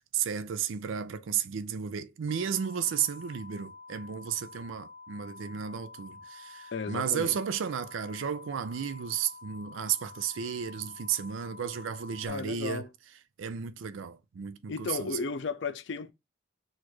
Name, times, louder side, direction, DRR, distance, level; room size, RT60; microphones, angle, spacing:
voice 1, 0.0-12.8 13.4-15.2, right 8 dB, 80° right, 0.4 m, -33 dB
sound 1, 2.3-12.3, left 4 dB, 55° right, 0.8 m, -49 dB
voice 2, 6.7-7.4 12.2-12.9 14.7-16.1, left 4 dB, 65° left, 0.4 m, -34 dB
6.2 x 2.5 x 3.0 m
head